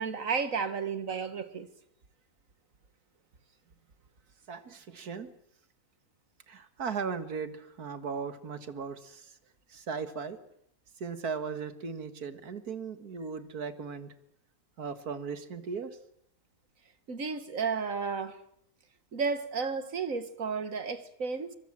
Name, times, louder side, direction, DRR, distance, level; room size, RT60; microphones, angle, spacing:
voice 1, 0.0-1.7 17.1-18.4 19.1-21.6, right 5 dB, 60° right, 2.0 m, -32 dB
voice 2, 4.5-5.3 6.5-9.3 9.7-10.4 11.0-14.1 14.8-16.0, right 5 dB, 85° right, 2.3 m, -37 dB
25.5 x 23.5 x 7.5 m
omnidirectional pair, 1.6 m